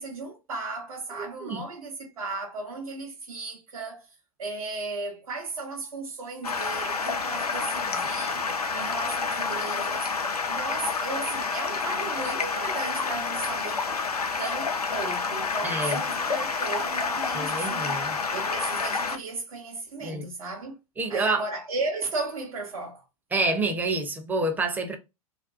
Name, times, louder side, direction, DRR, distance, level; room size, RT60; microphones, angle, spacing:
voice 1, 0.0-4.1 4.4-8.5 8.7-10.1 10.4-13.8 14.4-18.0 18.3-20.8 21.1-23.0, right 3 dB, 65° right, 0.6 m, -35 dB
voice 2, 1.2-1.6 15.6-16.0 17.3-18.2 20.0-20.2 21.0-21.5 23.3-25.0, right 2 dB, 10° right, 0.5 m, -28 dB
Stream, 6.4-19.2, left 5 dB, 90° left, 0.4 m, -29 dB
2.4 x 2.2 x 2.4 m
figure-of-eight pair, 95°, 19 cm